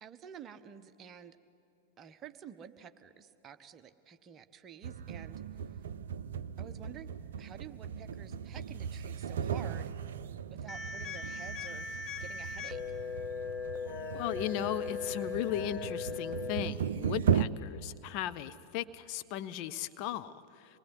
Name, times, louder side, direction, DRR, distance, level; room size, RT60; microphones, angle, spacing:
voice 1, 0.0-1.4 2.0-5.4 6.6-9.9 10.5-11.9 12.2-12.8, right 8 dB, 25° right, 9 dB, 1.1 m, -50 dB
sound 1, 4.8-17.5, right 8 dB, 60° right, 0.6 m, -37 dB
sound 2, 10.7-16.7, left 5 dB, 20° left, 1.4 m, -39 dB
voice 2, 14.1-20.8, left 11 dB, 45° left, 10 dB, 0.8 m, -37 dB
26.0 x 20.5 x 9.9 m, 2.6 s
figure-of-eight pair, 90°, 0 cm